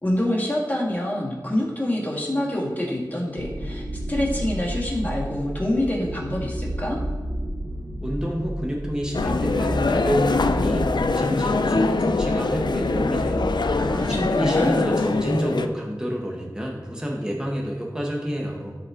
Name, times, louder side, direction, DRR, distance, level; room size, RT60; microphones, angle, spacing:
voice 1, 0.0-7.0 13.8-14.9, left 1 dB, 20° left, -3 dB, 2.3 m, -26 dB
sound 1, 3.4-15.1, right 1 dB, 85° right, 1.0 m, -31 dB
voice 2, 8.0-13.6 14.1-18.8, equal, 10° right, -1 dB, 1.2 m, -28 dB
sound 2, 9.1-15.7, left 3 dB, 75° left, 0.4 m, -23 dB
12.5 x 4.2 x 3.9 m, 1.4 s
wide cardioid pair, 50°, 8 cm